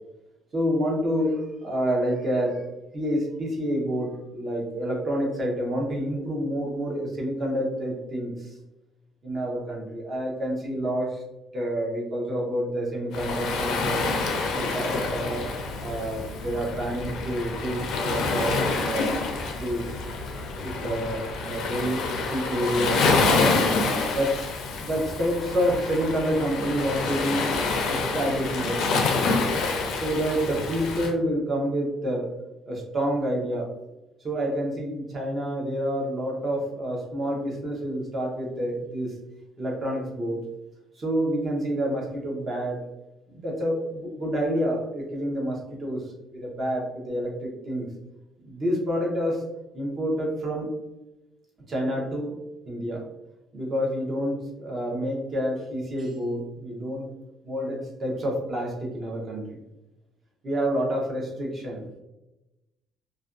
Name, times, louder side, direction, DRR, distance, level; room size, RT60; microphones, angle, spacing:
voice 1, 0.5-2.7 2.9-8.5 9.2-11.2 11.5-14.1 14.5-15.5 15.8-19.2 19.6-20.0 20.6-23.7 24.1-24.5 24.7-27.4 27.9-29.2 29.9-32.3 32.7-33.7 34.2-39.2 39.6-40.4 41.0-42.8 43.3-46.0 46.3-47.9 48.4-49.4 49.7-50.7 51.7-52.4 52.7-53.1 53.5-57.1 57.4-59.6 60.4-61.9, equal, 30° right, -2 dB, 0.6 m, -28 dB
Waves surf, 13.1-31.1, left 4 dB, 65° left, 0.4 m, -27 dB
2.4 x 2.2 x 2.4 m, 0.99 s
cardioid pair, 160°, 0 cm